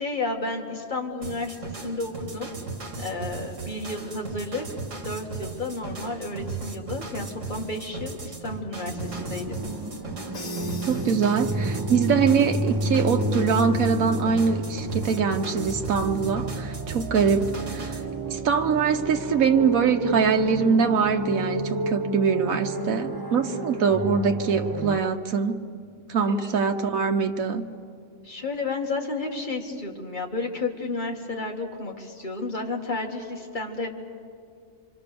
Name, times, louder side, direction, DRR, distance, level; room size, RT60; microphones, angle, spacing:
voice 1, 0.0-2.5 3.0-4.6 5.0-9.6 26.3-26.6 28.2-33.9, left 3 dB, 35° left, 0 dB, 2.3 m, -32 dB
sound 1, 1.2-18.1, right 4 dB, 65° right, 2.6 m, -37 dB
sound 2, 8.9-25.0, right 1 dB, 20° right, 0.8 m, -30 dB
Crash cymbal, 10.3-12.0, left 3 dB, 70° left, 2.2 m, -43 dB
voice 2, 10.9-18.0 18.3-25.6 26.1-27.6, right 6 dB, 90° right, 5 dB, 1.4 m, -23 dB
27.0 x 25.0 x 6.9 m, 2.2 s
omnidirectional pair, 1.4 m